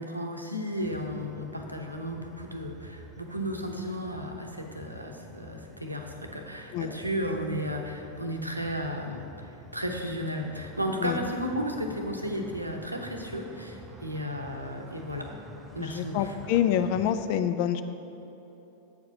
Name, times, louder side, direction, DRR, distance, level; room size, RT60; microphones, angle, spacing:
voice 1, 0.0-15.3 15.7-16.4, equal, 85° right, 3 dB, 0.8 m, -34 dB
sound 1, 0.8-17.1, left 1 dB, 10° right, 0.7 m, -48 dB
voice 2, 15.8-17.8, left 10 dB, 45° left, 10 dB, 0.4 m, -26 dB
8.1 x 4.8 x 5.9 m, 3.0 s
figure-of-eight pair, 90°, 0 cm